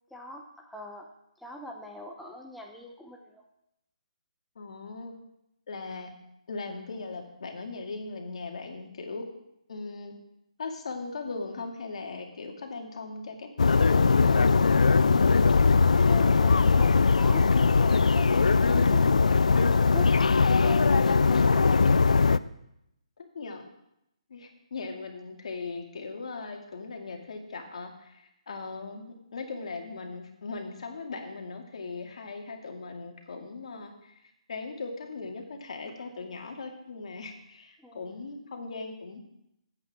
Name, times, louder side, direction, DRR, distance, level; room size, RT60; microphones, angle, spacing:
voice 1, 0.1-1.1 1.4-3.4 15.8-20.1 20.6-21.8 37.8-38.1, left 1 dB, ahead, 0 dB, 0.7 m, -43 dB
voice 2, 4.6-5.2 5.7-6.1 6.5-9.2 9.7-10.1 10.6-14.7 21.2-21.5 23.3-23.7 24.3-34.2 34.5-39.3, left 3 dB, 65° left, 3 dB, 2.3 m, -39 dB
sound 1, 13.6-22.4, left 4 dB, 85° left, 0.4 m, -20 dB
19.5 x 8.3 x 3.7 m, 0.81 s
hypercardioid pair, 155°, 4 cm